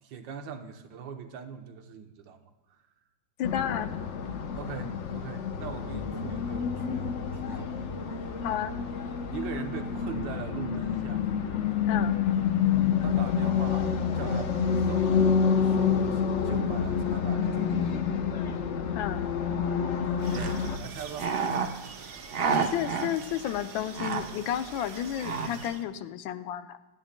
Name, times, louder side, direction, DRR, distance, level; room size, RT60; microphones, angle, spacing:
voice 1, 0.0-2.8 4.5-7.8 9.3-11.3 13.0-17.9 20.0-21.3, right 7 dB, 75° right, 6 dB, 1.6 m, -41 dB
voice 2, 3.4-3.9 4.8-4.9 8.4-8.7 11.9-12.2 18.9-19.2 22.6-26.8, left 10 dB, 85° left, 11 dB, 1.4 m, -32 dB
sound 1, 3.4-20.8, left 7 dB, 60° left, 0.7 m, -28 dB
sound 2, 20.2-25.8, right 5 dB, 60° right, 0.6 m, -32 dB
26.5 x 10.0 x 2.2 m, 1.2 s
omnidirectional pair, 2.1 m